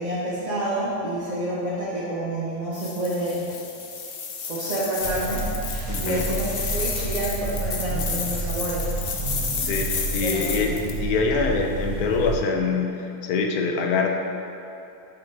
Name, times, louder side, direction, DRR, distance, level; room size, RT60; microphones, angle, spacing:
voice 1, 0.0-3.5 4.5-5.5 6.0-9.1 10.2-11.0, right 1 dB, 35° right, -10 dB, 0.8 m, -28 dB
sound 1, 2.7-11.0, left 5 dB, 90° left, 0.5 m, -32 dB
sound 2, 5.0-12.4, right 3 dB, 80° right, 1.7 m, -30 dB
voice 2, 5.9-6.3 9.6-10.7 11.0-14.1, left 4 dB, 70° left, 2 dB, 1.0 m, -24 dB
8.7 x 4.0 x 3.3 m, 2.7 s
omnidirectional pair, 1.8 m